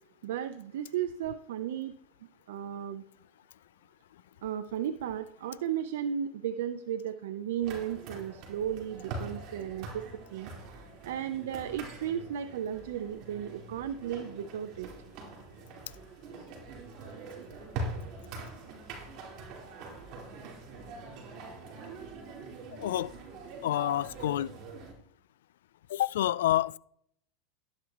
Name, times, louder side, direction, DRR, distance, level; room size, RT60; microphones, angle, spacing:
voice 1, 0.2-2.0 2.5-3.0 4.4-10.0 10.3-14.9, right 9 dB, 80° right, 0.7 m, -35 dB
sound 1, 7.6-24.9, right 3 dB, 55° right, 4.1 m, -43 dB
voice 2, 22.7-23.1 23.6-24.6 25.9-26.8, left 13 dB, 80° left, 0.3 m, -28 dB
12.5 x 10.5 x 3.0 m
supercardioid pair, 115°, 0 cm